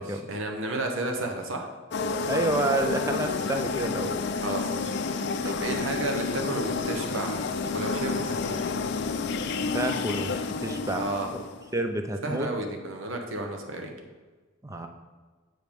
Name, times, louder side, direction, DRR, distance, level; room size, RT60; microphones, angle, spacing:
voice 1, 0.0-1.7 4.4-7.3 7.7-8.6 10.9-11.3 12.2-13.9, right 2 dB, 90° right, 3 dB, 1.0 m, -32 dB
sound 1, 1.9-11.7, left 4 dB, 60° left, 0.5 m, -30 dB
voice 2, 2.3-4.1 5.4-5.5 9.7-11.0 11.3-11.4 11.7-12.5 14.6-14.9, right 2 dB, 15° right, 6 dB, 0.6 m, -29 dB
7.7 x 5.1 x 5.2 m, 1.3 s
head